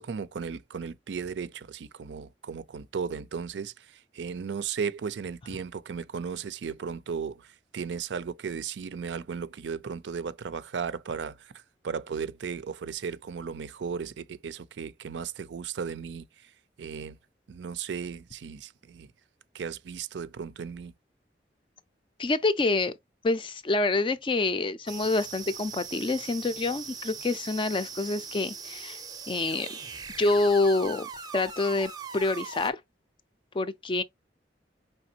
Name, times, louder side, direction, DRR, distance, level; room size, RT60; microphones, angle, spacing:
voice 1, 0.0-17.2 17.5-19.1 19.5-20.9, right 6 dB, 80° right, 0.4 m, -36 dB
voice 2, 22.2-22.9 23.2-29.0 29.3-29.8 30.2-31.1 31.3-32.8 33.5-34.0, left 2 dB, 30° left, 0.4 m, -27 dB
sound 1, 24.9-32.7, right 6 dB, 20° right, 0.5 m, -41 dB
5.1 x 3.2 x 2.8 m
head